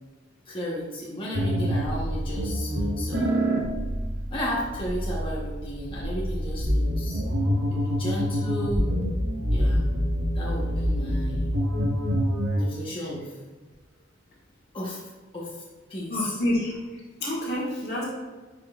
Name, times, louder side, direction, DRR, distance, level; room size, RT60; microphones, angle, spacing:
voice 1, 0.5-3.5 4.3-7.2 7.7-8.9 9.5-9.8 10.3-11.5 12.5-13.4 14.7-15.0 15.3-15.6 15.9-16.4, equal, 25° left, -5 dB, 1.1 m, -33 dB
sound 1, 1.4-12.6, equal, 80° right, 1.4 m, -26 dB
voice 2, 16.1-16.8 17.2-18.0, left 1 dB, 55° left, -7 dB, 1.5 m, -27 dB
10.5 x 5.0 x 2.4 m, 1.3 s
head